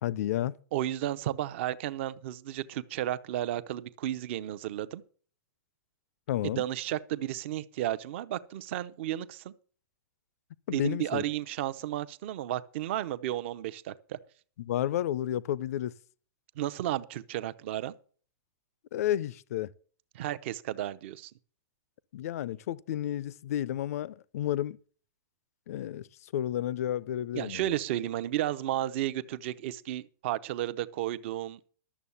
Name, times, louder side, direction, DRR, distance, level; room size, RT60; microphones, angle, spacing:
voice 1, 0.0-0.6 6.3-6.6 10.7-11.2 14.6-15.9 18.9-19.7 22.1-24.8 25.7-27.7, left 12 dB, 50° left, 0.5 m, -31 dB
voice 2, 0.7-5.0 6.6-9.5 10.7-14.2 16.6-17.9 20.1-21.3 27.3-31.7, right 13 dB, 40° right, 0.6 m, -33 dB
12.5 x 7.2 x 7.0 m
supercardioid pair, 175°, 10 cm